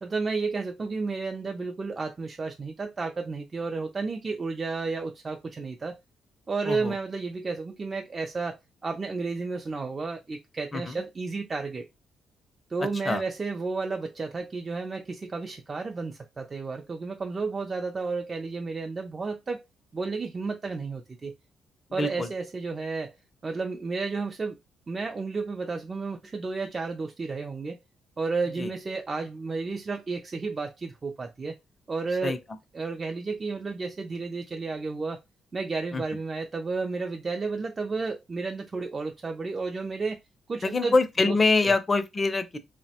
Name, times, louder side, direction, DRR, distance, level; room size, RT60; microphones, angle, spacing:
voice 1, 0.0-6.0 6.5-8.6 8.8-11.9 12.7-19.6 19.9-21.3 21.9-23.1 23.4-24.6 24.9-27.8 28.2-31.6 31.9-32.4 32.7-35.2 35.5-40.2 40.5-40.9 41.2-41.4 41.6-41.7, right 4 dB, 30° right, 0.3 m, -32 dB
voice 2, 6.6-7.0 10.7-11.0 13.0-13.2 21.9-22.3 28.6-28.7 32.2-32.4 35.9-36.0 40.6-42.6, left 3 dB, 30° left, 0.4 m, -25 dB
2.7 x 2.1 x 2.7 m
cardioid pair, 90°, 0 cm